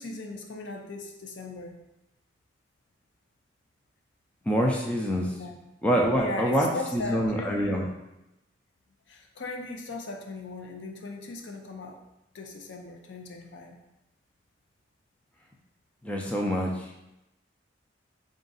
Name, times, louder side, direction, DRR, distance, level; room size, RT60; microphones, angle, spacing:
voice 1, 0.0-1.7 5.3-5.6 6.2-7.8 9.1-12.0 12.3-13.8, left 2 dB, 85° left, 3 dB, 0.5 m, -38 dB
voice 2, 4.5-5.3 5.8-7.9 16.0-16.9, equal, 5° left, -1 dB, 0.4 m, -26 dB
3.7 x 2.5 x 3.9 m, 0.92 s
head